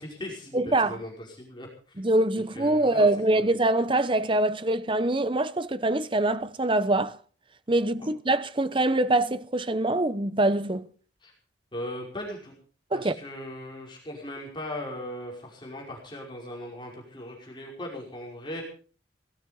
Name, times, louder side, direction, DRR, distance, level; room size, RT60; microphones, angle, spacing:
voice 1, 0.0-2.0 2.5-3.1 3.4-3.5 11.2-11.3 11.7-12.5 12.9-18.6, left 1 dB, 25° left, 5.4 m, -38 dB
voice 2, 0.5-1.0 2.0-7.2 7.7-10.9 12.9-13.1, right 2 dB, 30° right, 0.8 m, -24 dB
18.5 x 14.0 x 5.4 m
head